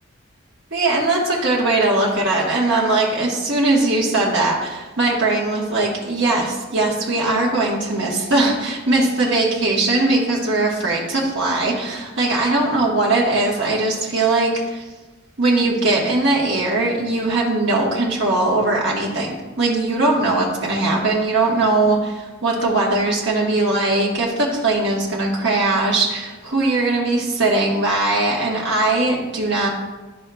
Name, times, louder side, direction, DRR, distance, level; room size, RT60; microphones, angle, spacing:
voice 1, 0.7-14.8 15.4-29.7, right 2 dB, 60° right, -3 dB, 1.2 m, -20 dB
12.0 x 5.3 x 2.3 m, 1.2 s
head